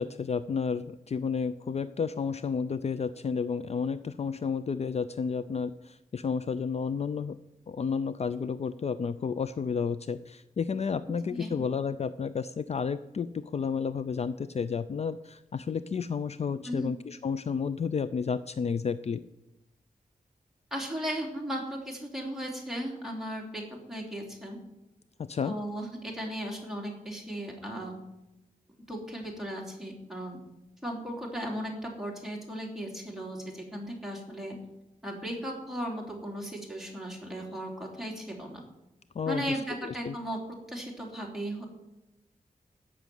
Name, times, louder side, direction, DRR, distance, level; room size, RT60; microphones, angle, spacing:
voice 1, 0.0-7.4 7.7-19.2 25.2-25.6 39.2-40.2, left 6 dB, 50° left, 14 dB, 0.4 m, -31 dB
voice 2, 11.3-11.6 16.6-16.9 20.7-24.6 25.4-28.0 28.9-30.4 30.8-34.6 35.0-38.6 39.2-40.4 40.7-41.7, equal, 5° right, -1 dB, 3.0 m, -36 dB
13.0 x 6.2 x 9.2 m, 0.94 s
wide cardioid pair, 125°, 15 cm